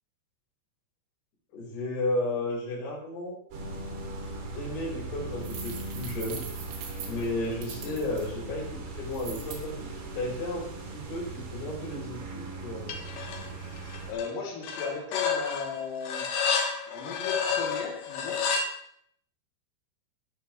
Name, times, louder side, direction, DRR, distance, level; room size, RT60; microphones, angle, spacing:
voice 1, 1.5-3.4 4.5-6.4 7.0-13.0, left 2 dB, 50° left, -4 dB, 6.8 m, -33 dB
sound 1, 3.5-14.1, right 2 dB, 60° right, 4.9 m, -39 dB
sound 2, 5.4-8.3 9.1-9.6, right 7 dB, 90° right, 5.2 m, -42 dB
sound 3, 12.9-13.5 13.8-14.3 14.6-18.7, left 6 dB, 65° left, 3.3 m, -30 dB
voice 2, 14.1-16.3 16.9-18.4, left 5 dB, 90° left, -4 dB, 5.9 m, -36 dB
19.5 x 12.0 x 3.3 m, 0.67 s
omnidirectional pair, 5.8 m